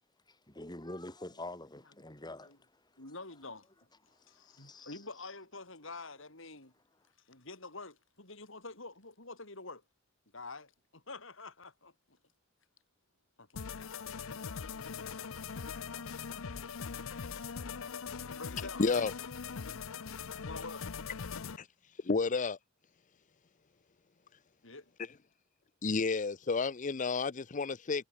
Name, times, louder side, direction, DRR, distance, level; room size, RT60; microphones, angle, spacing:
voice 1, 0.3-3.1 4.2-5.0, left 1 dB, 20° left, 7.7 m, -46 dB
voice 2, 3.0-3.7 4.1-6.7 7.3-9.8 10.3-12.2 13.4-13.9 15.9-16.0 18.3-19.1 19.7-19.8 20.4-20.9 24.6-24.9, left 3 dB, 65° left, 5.8 m, -47 dB
sound 1, 13.5-21.6, left 6 dB, 90° left, 0.8 m, -41 dB
voice 3, 18.8-19.1 21.6-21.7 22.0-22.6 25.8-28.1, left 4 dB, 40° left, 0.6 m, -31 dB
head